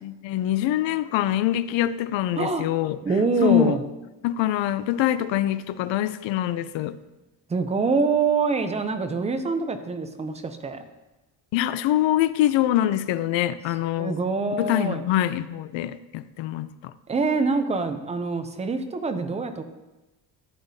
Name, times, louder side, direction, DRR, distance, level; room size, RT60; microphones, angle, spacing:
voice 1, 0.0-3.0 3.4-3.8 4.2-7.0 11.5-14.2 14.6-16.9, left 12 dB, 85° left, 0.6 m, -24 dB
voice 2, 2.4-2.7 3.0-3.8 7.5-10.8 14.0-15.0 17.1-19.6, right 4 dB, 15° right, 0.4 m, -25 dB
14.0 x 8.0 x 2.7 m
cardioid pair, 180°, 44 cm